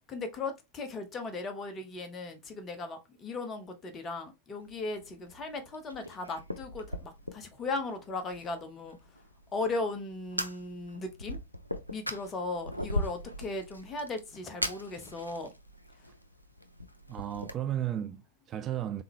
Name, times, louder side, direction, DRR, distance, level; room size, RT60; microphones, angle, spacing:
voice 1, 0.1-9.2 9.5-11.4 11.9-15.5, left 3 dB, 25° left, 1.0 m, -37 dB
Fire, 4.6-17.5, equal, 90° left, 0.5 m, -40 dB
voice 2, 17.1-19.0, right 11 dB, 30° right, 0.3 m, -34 dB
3.6 x 3.6 x 3.2 m
figure-of-eight pair, 90°, 0 cm